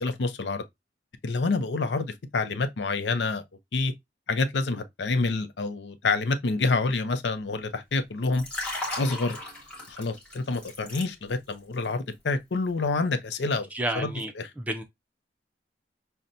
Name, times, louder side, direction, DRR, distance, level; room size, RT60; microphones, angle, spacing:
voice 1, 0.0-0.6 1.2-3.4 3.7-3.9 4.3-8.4 9.0-9.4 9.9-13.7 13.9-14.5, left 3 dB, 80° left, 0.6 m, -27 dB
Liquid, 8.2-11.5 11.8-12.1, left 2 dB, 5° left, 1.1 m, -36 dB
voice 2, 13.7-14.3 14.7-14.8, right 1 dB, 10° right, 0.4 m, -29 dB
5.6 x 2.1 x 2.5 m
head